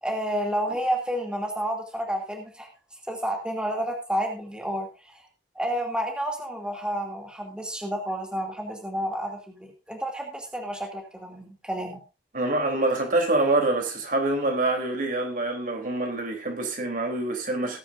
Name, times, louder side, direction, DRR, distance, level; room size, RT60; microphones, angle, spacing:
voice 1, 0.0-2.7 3.1-5.1 5.5-12.0, equal, 5° right, 2.5 m, -30 dB
voice 2, 12.3-17.8, right 2 dB, 50° right, 3.3 m, -25 dB
19.0 x 9.5 x 2.6 m
head